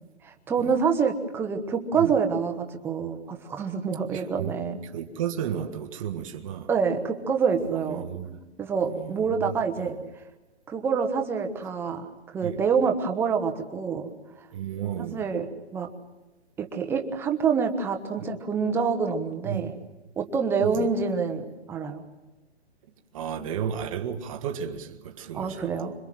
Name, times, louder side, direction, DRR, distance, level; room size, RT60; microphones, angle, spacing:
voice 1, 0.2-4.8 6.7-8.0 8.6-10.0 10.7-12.1 12.3-14.1 15.1-15.5 15.7-15.9 16.6-19.7 20.2-21.4 21.7-22.0 25.3-25.9, right 5 dB, 5° right, 1.1 m, -26 dB
voice 2, 4.1-4.5 4.8-6.7 7.6-8.4 8.8-9.9 12.4-12.6 14.5-15.3 18.2-18.3 19.4-19.8 20.6-20.9 23.1-25.8, right 9 dB, 30° right, 1.7 m, -33 dB
26.0 x 22.5 x 7.7 m
hypercardioid pair, 160°, 34 cm